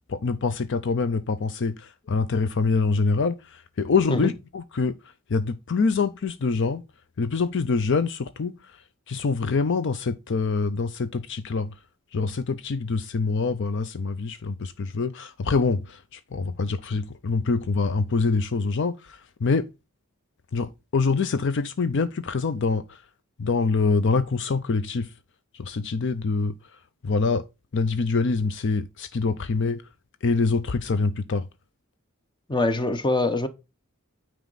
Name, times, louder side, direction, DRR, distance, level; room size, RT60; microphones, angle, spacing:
voice 1, 0.1-5.0 5.3-6.8 7.2-8.5 9.1-11.7 12.1-19.7 20.5-23.0 23.4-25.1 25.5-26.5 27.0-27.4 27.7-29.8 30.2-31.5, left 4 dB, 60° left, 0.5 m, -25 dB
voice 2, 32.5-33.5, left 2 dB, 20° left, 0.8 m, -23 dB
9.3 x 4.6 x 3.9 m
head